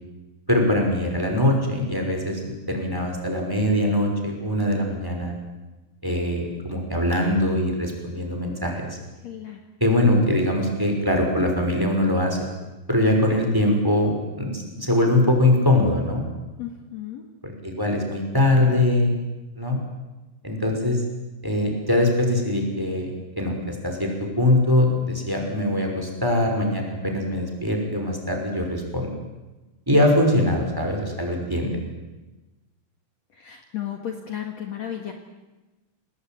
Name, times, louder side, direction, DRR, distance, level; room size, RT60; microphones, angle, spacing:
voice 1, 0.5-5.3 6.0-8.8 9.8-12.4 12.9-16.2 17.4-19.2 19.6-19.8 20.4-21.0 21.4-23.1 23.4-29.1 29.9-31.7, left 1 dB, 5° right, 2 dB, 5.7 m, -22 dB
voice 2, 9.2-9.6 16.6-17.2 31.3-31.4 33.3-35.1, left 10 dB, 55° left, 4 dB, 2.8 m, -34 dB
29.0 x 20.0 x 9.4 m, 1.1 s
omnidirectional pair, 3.9 m